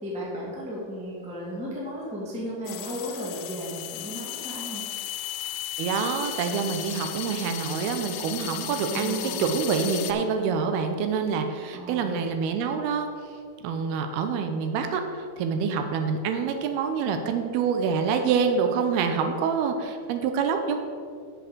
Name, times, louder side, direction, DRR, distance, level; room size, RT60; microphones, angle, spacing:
voice 1, 0.0-4.8 8.8-9.4 11.7-12.1, equal, 5° right, -5 dB, 0.7 m, -35 dB
sound 1, 2.7-10.1, left 12 dB, 80° left, 2.3 m, -35 dB
voice 2, 5.8-13.1 13.6-20.8, right 6 dB, 85° right, 6 dB, 2.7 m, -26 dB
7.4 x 6.1 x 6.7 m, 2.2 s
omnidirectional pair, 4.5 m